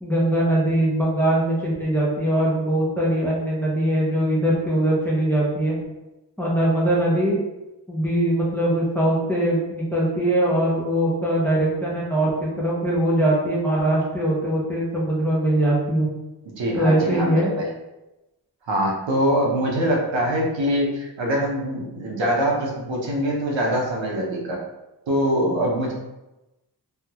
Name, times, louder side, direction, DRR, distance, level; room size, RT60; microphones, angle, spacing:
voice 1, 0.0-5.8 6.4-7.4 7.9-16.1 16.7-17.5, right 1 dB, 5° left, -6 dB, 0.6 m, -21 dB
voice 2, 16.6-17.7 18.7-24.6 25.1-25.9, equal, 85° right, -2 dB, 0.8 m, -23 dB
3.4 x 2.2 x 2.9 m, 1.0 s
wide cardioid pair, 170°, 43 cm